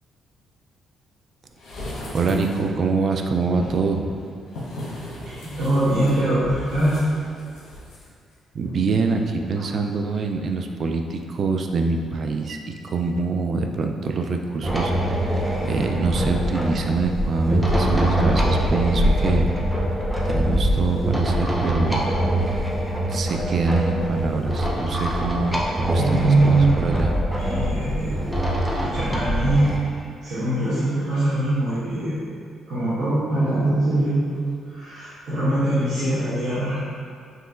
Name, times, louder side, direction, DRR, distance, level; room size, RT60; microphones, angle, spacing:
sound 1, 1.6-2.9 3.5-8.0 8.3-8.4, left 1 dB, 80° left, 1.0 m, -36 dB
voice 1, 2.1-4.1 8.5-19.6 20.3-22.0 23.1-27.2, right 3 dB, 50° right, 4 dB, 0.3 m, -25 dB
voice 2, 5.2-7.0 8.6-8.7 26.0-26.7 27.4-28.1 28.8-29.7 30.2-32.1 32.7-36.8, right 2 dB, 80° right, -14 dB, 1.3 m, -22 dB
sound 2, 14.6-29.8, equal, 5° right, 0.6 m, -23 dB
5.4 x 2.8 x 2.5 m, 2.2 s
cardioid pair, 90°, 0 cm